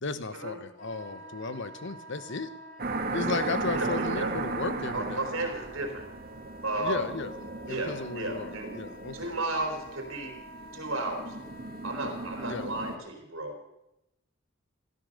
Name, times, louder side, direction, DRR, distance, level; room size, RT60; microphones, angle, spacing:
voice 1, 0.0-2.5 3.1-5.2 6.8-7.3 7.7-9.4 12.4-12.7, left 3 dB, 60° left, 12 dB, 1.0 m, -34 dB
Wind instrument woodwind instrument, 0.8-12.6, right 1 dB, 35° left, 6.5 m, -49 dB
sound 1, 2.8-13.0, right 3 dB, 45° right, 1.4 m, -36 dB
voice 2, 3.6-4.3 4.9-6.1 6.6-7.1 7.7-8.7 9.1-10.4 10.7-11.4 11.8-13.5, right 2 dB, 65° right, 3 dB, 3.8 m, -33 dB
16.0 x 12.5 x 6.6 m, 0.88 s
head